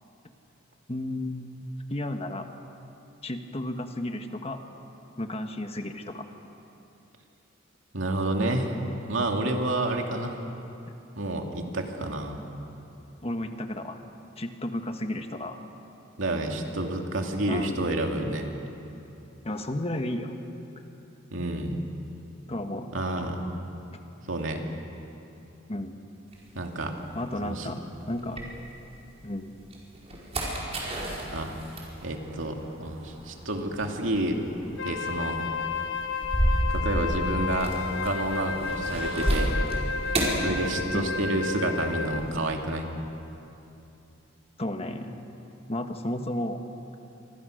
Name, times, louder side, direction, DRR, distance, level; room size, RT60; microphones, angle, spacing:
voice 1, 0.9-1.5 1.9-2.5 3.2-4.6 5.2-6.2 13.2-14.0 14.4-15.6 17.5-17.7 19.4-20.3 22.5-22.9 25.7-25.9 27.1-27.8 28.1-28.4 29.2-29.5 40.9-41.1 44.6-45.1 45.7-46.7, left 1 dB, 30° left, 6 dB, 1.5 m, -32 dB
voice 2, 7.9-10.4 11.2-12.4 16.2-18.5 21.3-21.8 22.9-23.4 24.3-24.6 26.5-26.9 27.4-27.7 31.3-31.5 32.0-34.4 34.8-35.4 36.7-37.8 38.0-39.6 40.4-42.9, right 1 dB, 70° right, 2 dB, 2.6 m, -29 dB
sound 1, 26.3-29.1 29.5-41.3 41.6-42.4, right 1 dB, 30° right, 4.9 m, -32 dB
Wind instrument woodwind instrument, 34.8-42.4, left 5 dB, 65° left, 1.1 m, -32 dB
28.5 x 24.5 x 6.6 m, 2.8 s
head